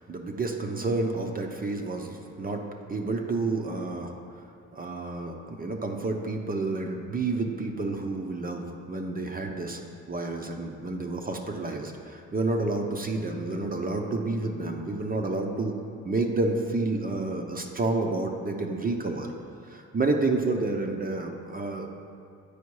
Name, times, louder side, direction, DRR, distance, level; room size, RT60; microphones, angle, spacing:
voice 1, 0.0-2.6 2.9-4.1 4.7-9.8 10.1-15.8 16.0-19.3 19.6-21.9, right 3 dB, 30° right, 2 dB, 0.7 m, -29 dB
8.5 x 4.9 x 4.7 m, 2.5 s
cardioid pair, 90°, 30 cm